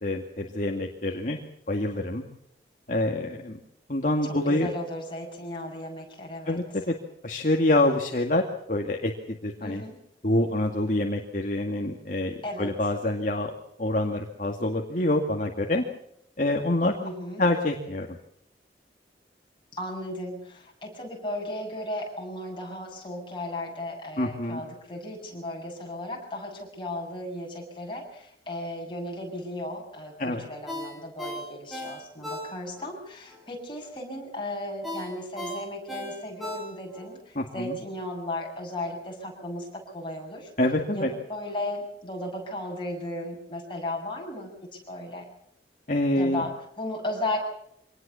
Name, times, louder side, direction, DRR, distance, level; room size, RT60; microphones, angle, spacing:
voice 1, 0.0-1.4 1.7-2.2 2.9-3.6 3.9-4.7 6.5-6.9 7.2-9.8 10.2-13.5 13.8-15.8 16.4-16.9 17.4-18.1 24.2-24.6 30.2-30.4 37.4-37.8 40.6-41.1 45.9-46.4, left 1 dB, 50° left, 2 dB, 2.2 m, -26 dB
voice 2, 4.2-6.6 9.6-10.0 12.4-12.7 17.0-17.5 19.7-40.5 40.9-44.5 44.9-45.3 46.2-47.4, left 1 dB, 30° left, 0 dB, 7.7 m, -35 dB
Ringtone, 30.7-32.9 33.3-33.4 34.8-37.1 37.5-37.6, left 1 dB, ahead, 7.4 m, -36 dB
25.5 x 19.5 x 7.1 m, 0.73 s
head